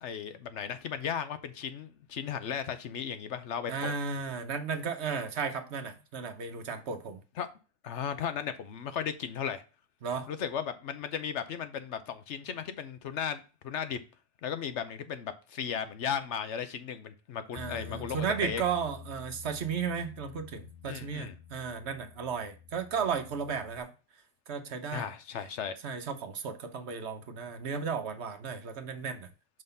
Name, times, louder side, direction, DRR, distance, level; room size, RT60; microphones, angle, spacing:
voice 1, 0.0-3.9 7.4-7.5 7.8-9.6 10.3-14.0 14.4-18.6 20.8-21.4 24.9-25.8, left 8 dB, 65° left, 0.9 m, -36 dB
voice 2, 3.7-7.2 10.0-10.3 17.5-23.9 24.5-25.1 25.8-29.3, right 6 dB, 60° right, 1.0 m, -34 dB
Bass guitar, 17.6-23.8, left 8 dB, 90° left, 1.2 m, -49 dB
5.5 x 3.9 x 5.3 m
omnidirectional pair, 1.4 m